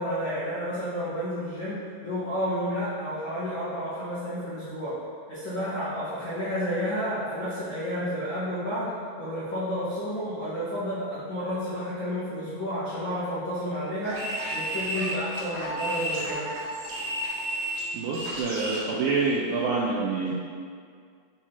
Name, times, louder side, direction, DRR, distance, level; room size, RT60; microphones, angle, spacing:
voice 1, 0.0-4.9 5.3-8.9 9.2-14.2 14.5-16.5, equal, 75° left, -13 dB, 1.1 m, -31 dB
sound 1, 14.0-18.9, right 1 dB, 65° right, 3.2 m, -32 dB
voice 2, 17.9-20.3, right 4 dB, 85° right, -4 dB, 2.0 m, -27 dB
8.3 x 4.5 x 2.8 m, 2.1 s
omnidirectional pair, 4.7 m